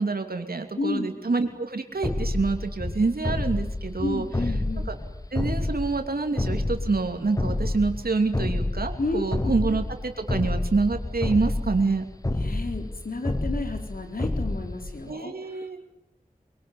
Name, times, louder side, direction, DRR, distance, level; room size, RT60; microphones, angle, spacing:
voice 1, 0.0-4.3 5.3-12.1 15.1-15.8, right 3 dB, 85° right, 5 dB, 2.9 m, -27 dB
voice 2, 0.8-1.1 4.0-4.8 9.0-9.2 12.3-15.8, left 3 dB, 75° left, 4 dB, 4.2 m, -31 dB
sound 1, 2.0-15.1, left 2 dB, 25° left, 1.0 m, -29 dB
24.5 x 22.5 x 9.6 m, 0.84 s
wide cardioid pair, 65°, 15 cm